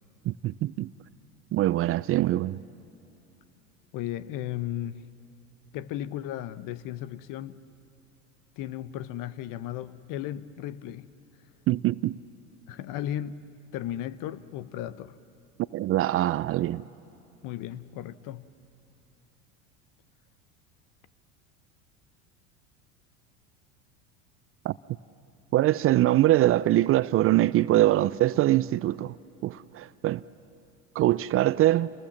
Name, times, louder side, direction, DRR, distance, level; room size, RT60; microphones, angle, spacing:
voice 1, 0.3-0.9 1.5-2.6 11.7-12.2 15.7-16.8 24.6-24.7 25.5-29.2 29.4-30.2 31.0-31.9, right 15 dB, 35° right, 0.4 m, -23 dB
voice 2, 3.9-5.0 5.7-7.6 8.6-11.1 12.7-15.2 17.4-18.5, left 12 dB, 55° left, 1.0 m, -35 dB
29.0 x 20.0 x 7.3 m
hypercardioid pair, 95°, 39 cm